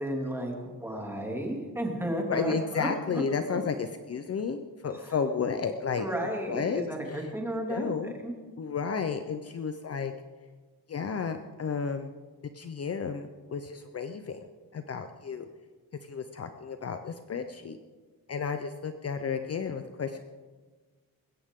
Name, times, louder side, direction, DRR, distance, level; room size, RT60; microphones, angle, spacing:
voice 1, 0.0-3.2 3.5-3.6 5.0-5.1 6.0-8.3, equal, 5° right, 0 dB, 2.6 m, -33 dB
voice 2, 2.3-6.1 6.5-7.3 7.7-8.1 8.6-10.1 10.9-12.1 12.5-14.4 14.7-15.4 16.1-17.8 18.3-20.2, left 6 dB, 45° left, 8 dB, 0.7 m, -32 dB
21.0 x 16.5 x 3.7 m, 1.4 s
wide cardioid pair, 165°, 35 cm